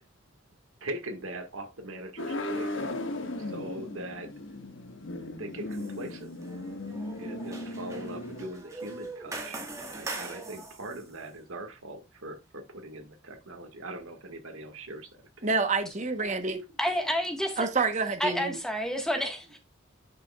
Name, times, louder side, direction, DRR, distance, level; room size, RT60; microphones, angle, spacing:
voice 1, 0.8-2.7 3.4-4.3 5.1-6.3 7.2-15.5, right 1 dB, 70° right, 1.7 m, -41 dB
sound 1, 2.2-8.5, left 1 dB, 60° left, 1.3 m, -36 dB
sound 2, 5.7-6.1 6.4-11.0, right 3 dB, 15° right, 1.4 m, -41 dB
voice 2, 15.4-16.6 17.6-18.6, right 4 dB, 35° right, 1.0 m, -28 dB
voice 3, 16.8-17.7 18.2-19.6, equal, ahead, 1.4 m, -29 dB
10.5 x 5.8 x 2.3 m
head